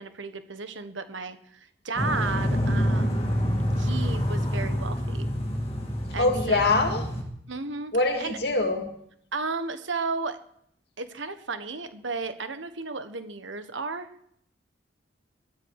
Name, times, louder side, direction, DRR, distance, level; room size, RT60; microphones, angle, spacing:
voice 1, 0.0-3.3 3.8-5.3 6.1-6.7 7.5-7.9 8.2-8.4 9.3-10.4 11.0-14.1, right 4 dB, 85° right, 10 dB, 1.4 m, -34 dB
sound 1, 2.0-7.2, equal, 30° left, 2.5 m, -27 dB
voice 2, 6.2-7.0 7.9-8.9, left 2 dB, 55° left, 4 dB, 2.4 m, -24 dB
21.5 x 13.0 x 4.9 m, 0.70 s
head